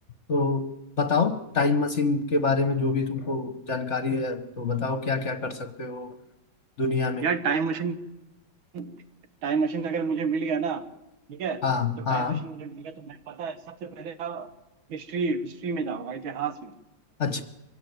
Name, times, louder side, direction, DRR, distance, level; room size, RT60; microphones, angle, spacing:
voice 1, 0.3-0.7 1.0-6.1 6.8-7.2 11.6-12.4 17.2-17.4, left 4 dB, 40° left, 10 dB, 1.2 m, -26 dB
voice 2, 7.2-8.0 8.7-9.0 9.4-10.9 11.3-11.6 12.0-14.5 14.9-16.8, right 5 dB, 80° right, 10 dB, 2.1 m, -30 dB
23.5 x 16.0 x 9.4 m, 0.95 s
omnidirectional pair, 2.2 m